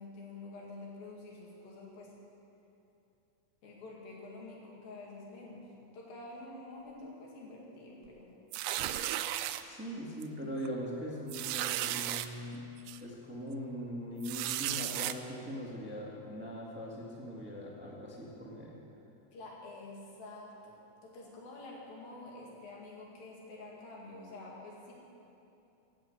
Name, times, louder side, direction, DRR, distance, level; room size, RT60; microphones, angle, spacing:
voice 1, 0.0-2.1 3.6-8.4 19.3-20.8 21.0-24.9, left 2 dB, 90° left, -3 dB, 4.0 m, -48 dB
sound 1, 8.5-9.6 10.2-10.4 10.7-10.8 11.3-12.3 12.9-13.0 14.2-15.1, right 13 dB, 80° right, 2.0 m, -34 dB
voice 2, 9.6-12.6 13.0-18.8, equal, 10° right, -3 dB, 0.4 m, -41 dB
16.0 x 7.6 x 7.8 m, 2.8 s
omnidirectional pair, 4.0 m